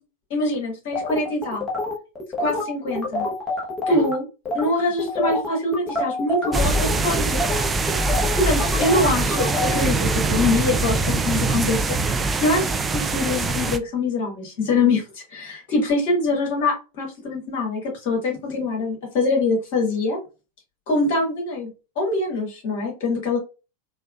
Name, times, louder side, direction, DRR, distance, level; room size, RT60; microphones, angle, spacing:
voice 1, 0.3-1.7 2.4-3.3 3.9-4.2 4.5-7.4 8.3-20.2 20.9-21.7 22.0-23.4, left 2 dB, 45° left, 1 dB, 1.7 m, -24 dB
sound 1, 0.9-4.1 4.5-4.7 5.0-9.8, left 2 dB, 15° left, 1.0 m, -27 dB
sound 2, 6.5-13.8, right 3 dB, 15° right, 0.3 m, -23 dB
4.3 x 2.3 x 2.4 m, 0.30 s
figure-of-eight pair, 90°, 0 cm